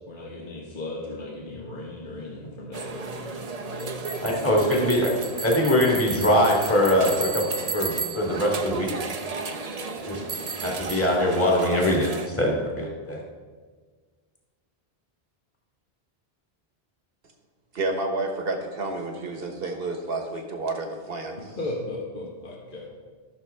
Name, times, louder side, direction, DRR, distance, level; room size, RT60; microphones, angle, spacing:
voice 1, 0.1-4.9 21.4-22.9, left 2 dB, 55° left, -3 dB, 1.4 m, -36 dB
sound 1, 2.7-12.3, right 4 dB, 45° right, 0.7 m, -33 dB
voice 2, 4.2-5.1 5.4-7.4 7.7-8.9 10.1-10.2 10.6-13.2, left 1 dB, 15° left, -2 dB, 1.7 m, -22 dB
voice 3, 17.7-21.4, right 2 dB, 65° right, 3 dB, 1.4 m, -30 dB
14.5 x 6.3 x 3.5 m, 1.5 s
omnidirectional pair, 1.1 m